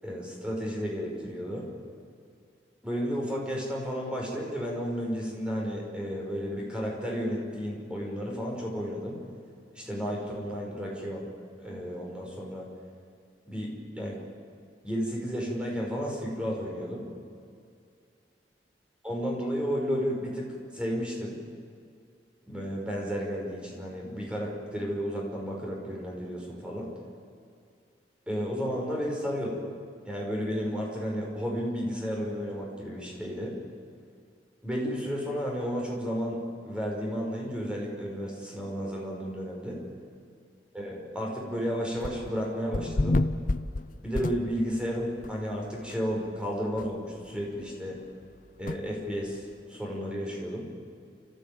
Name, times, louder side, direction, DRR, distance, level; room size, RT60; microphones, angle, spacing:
voice 1, 0.0-1.7 2.8-9.2 9.7-11.3 11.6-12.7 13.5-14.2 14.8-17.0 19.0-21.4 22.5-26.9 28.3-29.6 30.1-33.5 34.6-36.4 36.6-39.8 40.7-43.2 44.0-48.0 48.6-50.7, equal, 5° right, -2 dB, 5.7 m, -32 dB
sound 1, 42.0-42.4 42.7-44.8 45.2-45.3 45.9-46.0 46.2-46.3 46.8-46.9 48.7-48.8, left 2 dB, 50° left, 0.7 m, -29 dB
30.0 x 15.0 x 9.0 m, 2.3 s
head